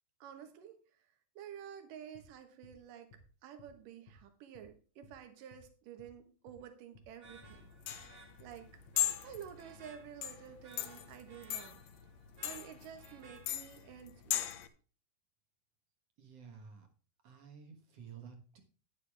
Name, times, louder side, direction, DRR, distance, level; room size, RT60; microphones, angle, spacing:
voice 1, 0.2-0.8 1.4-3.1 3.4-8.7 9.2-11.8 12.4-14.6, right 9 dB, 80° right, 7 dB, 2.9 m, -51 dB
sound 1, 2.1-2.3 2.6-2.8 3.1-3.3 3.6-3.8 4.1-4.2 4.6-4.7 5.0-5.2 5.5-5.7 6.0-6.2 6.5-6.6 6.9-7.1 7.4-7.6 7.9-8.1 8.4-8.6 8.9-9.0 9.4-9.5, left 2 dB, 90° left, 3.7 m, -59 dB
sound 2, 7.2-13.9, right 4 dB, 40° right, 1.1 m, -59 dB
sound 3, 7.3-14.7, left 12 dB, 70° left, 1.7 m, -39 dB
voice 2, 16.2-16.9 17.2-18.6, right 6 dB, 55° right, 4 dB, 2.2 m, -52 dB
9.9 x 9.8 x 3.4 m, 0.38 s
omnidirectional pair, 3.8 m